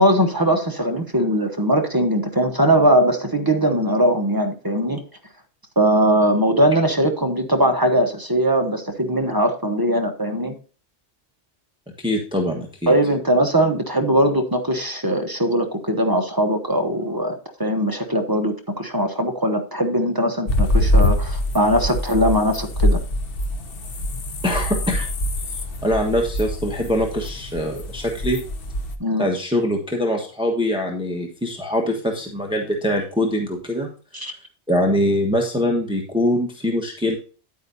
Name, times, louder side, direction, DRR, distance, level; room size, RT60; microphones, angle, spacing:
voice 1, 0.0-5.0 5.8-10.5 12.9-17.3 17.6-23.0 29.0-29.3 34.1-34.3, equal, 20° right, 5 dB, 1.0 m, -20 dB
voice 2, 12.0-12.9 24.4-25.1 25.8-28.4 29.2-33.9 34.7-37.2, left 1 dB, 5° right, 1 dB, 1.3 m, -23 dB
sound 1, 20.5-29.0, left 1 dB, 60° left, 1.1 m, -24 dB
10.0 x 8.4 x 2.7 m, 0.38 s
omnidirectional pair, 1.1 m